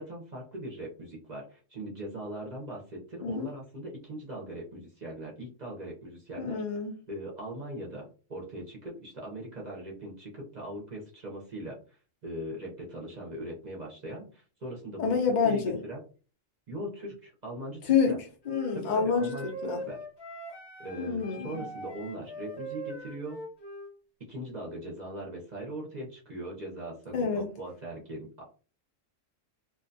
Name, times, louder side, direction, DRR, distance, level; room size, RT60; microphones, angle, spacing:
voice 1, 0.0-6.6 7.1-8.0 8.3-15.2 15.4-16.0 16.7-18.2 18.7-19.5 19.9-20.0 20.8-23.4 24.3-28.4, right 1 dB, 50° right, 0.5 m, -40 dB
voice 2, 6.4-6.9 15.0-15.8 17.8-18.2 18.5-19.8 21.0-21.6 27.1-27.5, left 6 dB, 80° left, 0.4 m, -27 dB
Wind instrument woodwind instrument, 18.4-23.9, right 1 dB, 25° left, 0.6 m, -42 dB
2.5 x 2.2 x 2.5 m
omnidirectional pair, 1.3 m